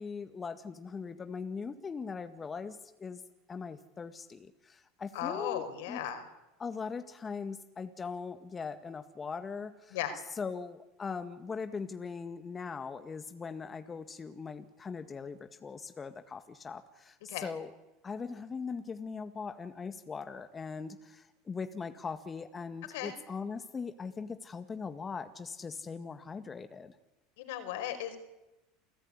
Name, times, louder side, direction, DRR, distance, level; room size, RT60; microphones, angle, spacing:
voice 1, 0.0-3.2 3.5-6.0 6.6-10.0 10.4-17.7 18.0-26.9, left 5 dB, 25° left, 9 dB, 1.8 m, -40 dB
voice 2, 5.1-6.3 9.9-10.2 17.3-17.5 22.9-23.1 27.4-28.2, left 10 dB, 75° left, 9 dB, 4.9 m, -36 dB
29.0 x 17.5 x 9.9 m, 1.0 s
hypercardioid pair, 90°, 0 cm